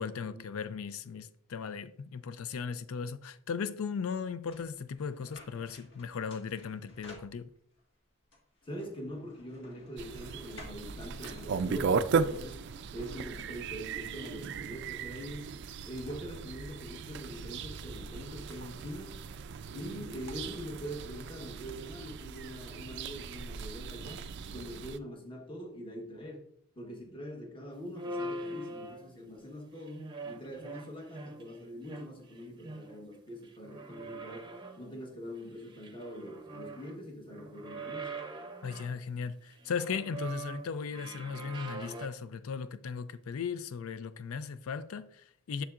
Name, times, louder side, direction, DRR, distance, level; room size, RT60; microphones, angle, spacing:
voice 1, 0.0-7.5 38.6-45.6, left 6 dB, 75° left, 0.4 m, -37 dB
sound 1, 4.5-7.8 8.3-12.2, left 2 dB, 55° left, 1.7 m, -55 dB
voice 2, 8.6-12.6 12.9-15.5 15.9-19.2 19.7-26.5 26.8-38.2, equal, 25° left, 1.2 m, -43 dB
sound 2, 10.0-25.0, right 5 dB, 50° right, 0.3 m, -37 dB
sound 3, 27.9-29.3 29.8-31.6 31.8-33.1 33.4-34.9 35.4-37.0 37.3-39.0 39.5-42.1, right 2 dB, 20° right, 0.7 m, -43 dB
7.1 x 7.0 x 2.5 m
head